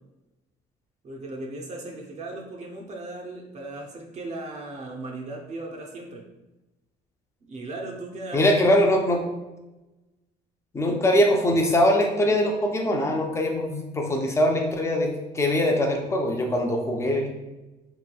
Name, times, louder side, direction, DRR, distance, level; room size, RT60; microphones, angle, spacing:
voice 1, 1.0-6.2 7.5-8.8 10.8-11.0, right 2 dB, 45° right, 0 dB, 0.6 m, -37 dB
voice 2, 8.3-9.2 10.7-17.3, left 1 dB, 15° left, 2 dB, 0.5 m, -22 dB
3.3 x 3.0 x 2.3 m, 1.1 s
cardioid pair, 110°, 17 cm